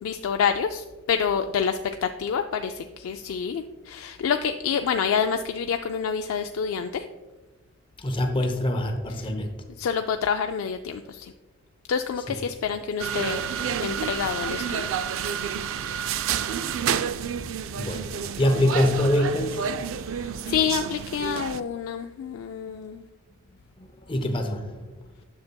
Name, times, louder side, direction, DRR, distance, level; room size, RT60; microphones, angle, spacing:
voice 1, 0.0-7.1 9.1-9.3 9.8-11.3 11.9-13.5 13.8-14.9 20.1-23.0, left 7 dB, 80° left, 6 dB, 0.3 m, -27 dB
voice 2, 8.0-9.5 12.3-12.4 16.7-16.9 17.8-19.7 24.1-24.9, left 1 dB, 25° left, 5 dB, 0.6 m, -25 dB
sound 1, 13.0-21.6, right 7 dB, 70° right, 0.3 m, -29 dB
9.5 x 6.6 x 2.2 m, 1.2 s
head